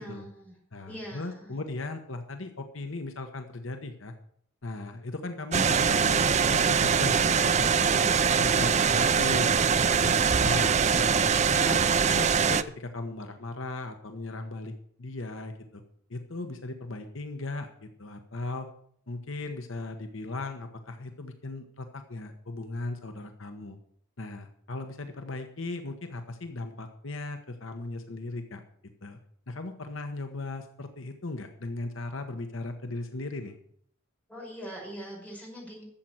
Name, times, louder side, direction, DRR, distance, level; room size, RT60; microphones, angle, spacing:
voice 1, 0.0-0.6 0.9-1.6 34.3-35.8, equal, 5° left, -3 dB, 5.7 m, -42 dB
voice 2, 0.7-4.1 4.6-9.5 9.9-11.8 12.1-14.7 15.0-15.8 16.1-18.7 19.1-23.8 24.2-28.6 29.0-29.2 29.5-33.6, left 2 dB, 65° left, 6 dB, 1.2 m, -37 dB
sound 1, 5.5-12.6, right 6 dB, 35° right, 0.5 m, -23 dB
13.0 x 7.6 x 7.9 m, 0.64 s
head